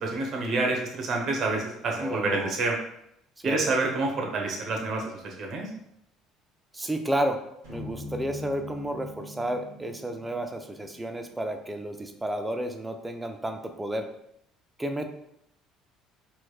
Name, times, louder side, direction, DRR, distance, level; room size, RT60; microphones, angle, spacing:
voice 1, 0.0-2.8 3.4-5.7, right 3 dB, 55° right, 1 dB, 0.9 m, -28 dB
voice 2, 2.0-2.6 3.4-3.6 6.7-7.4 7.7-14.1 14.8-15.1, right 1 dB, 15° right, 6 dB, 0.5 m, -31 dB
sound 1, 7.6-12.0, left 2 dB, 75° right, 1.2 m, -43 dB
4.3 x 3.2 x 2.3 m, 0.76 s
hypercardioid pair, 60°, 0 cm